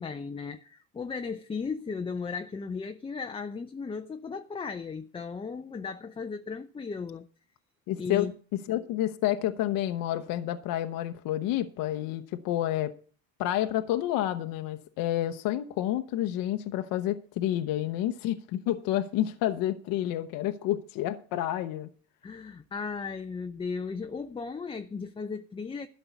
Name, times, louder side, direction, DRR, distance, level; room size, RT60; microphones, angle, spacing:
voice 1, 0.0-7.3 8.0-8.3 22.2-25.9, left 5 dB, 15° left, 0.5 m, -36 dB
voice 2, 7.9-8.3 8.7-12.9 13.4-21.9, left 13 dB, 65° left, 0.9 m, -29 dB
12.5 x 5.5 x 8.2 m
supercardioid pair, 105°, 36 cm